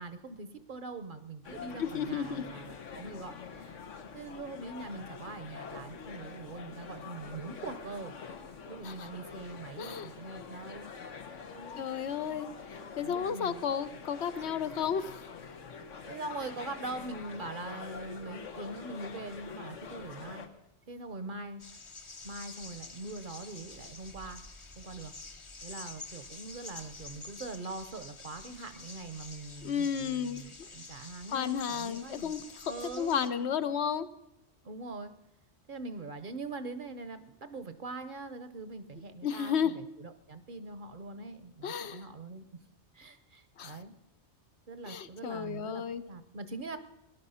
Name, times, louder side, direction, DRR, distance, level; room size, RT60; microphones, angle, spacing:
voice 1, 0.0-3.8 4.1-8.1 8.7-10.9 11.5-11.9 13.0-13.6 16.0-20.4 20.9-21.6 22.2-24.4 24.8-25.1 25.6-32.3 32.6-33.7 34.6-35.1 35.7-42.5 42.9-43.9 44.7-46.8, right 3 dB, 50° right, 11 dB, 0.9 m, -42 dB
sound 1, 1.4-20.5, left 6 dB, 90° left, 1.4 m, -46 dB
voice 2, 1.8-2.4 8.8-9.1 9.8-10.1 11.8-12.5 13.0-15.3 29.6-30.4 31.3-32.6 33.0-34.1 39.2-39.7 41.6-42.1 43.6-43.8 44.9-46.0, left 7 dB, 70° left, 12 dB, 0.9 m, -32 dB
sound 2, 21.6-33.3, left 3 dB, 30° left, 0.8 m, -48 dB
17.5 x 11.0 x 5.5 m, 0.90 s
omnidirectional pair, 1.2 m